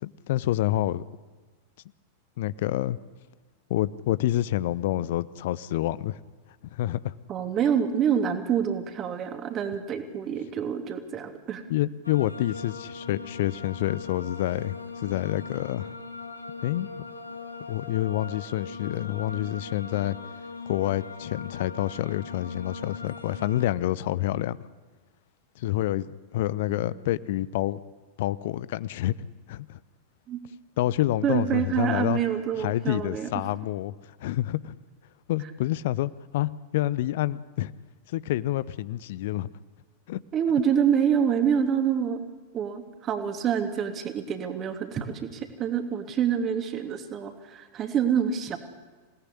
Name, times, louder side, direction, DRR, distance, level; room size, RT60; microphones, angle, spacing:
voice 1, 0.0-1.0 2.4-3.0 3.7-6.2 6.7-7.1 11.7-15.9 16.6-16.9 17.7-20.2 20.7-24.6 25.6-27.8 28.2-29.1 29.5-29.8 30.8-32.2 32.6-33.9 34.2-34.7 35.3-37.7 38.1-39.5 40.1-40.2, left 14 dB, 55° left, 19 dB, 0.8 m, -28 dB
voice 2, 7.3-11.6 26.7-27.0 30.3-30.4 31.2-33.3 40.3-42.2 42.5-48.6, right 8 dB, 30° right, 7 dB, 3.0 m, -27 dB
sound 1, 12.0-23.6, left 4 dB, 85° left, 2.3 m, -40 dB
26.5 x 18.5 x 10.0 m, 1.3 s
figure-of-eight pair, 90°, 0 cm